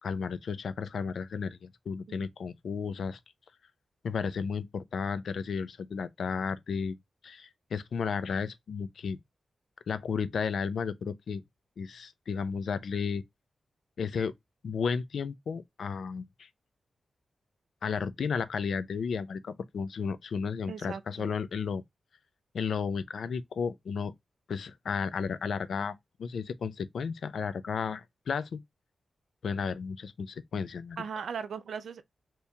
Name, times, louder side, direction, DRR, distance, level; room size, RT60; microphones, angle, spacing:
voice 1, 0.0-3.2 4.0-7.0 7.2-9.2 9.9-11.4 11.8-13.2 14.0-14.3 14.6-16.5 17.8-21.8 22.5-24.1 24.5-25.9 26.2-28.6 29.4-31.0, left 6 dB, 70° left, 0.4 m, -33 dB
voice 2, 20.7-21.3 31.0-32.0, right 6 dB, 75° right, 0.4 m, -38 dB
3.5 x 2.9 x 2.7 m
wide cardioid pair, 155°, 0 cm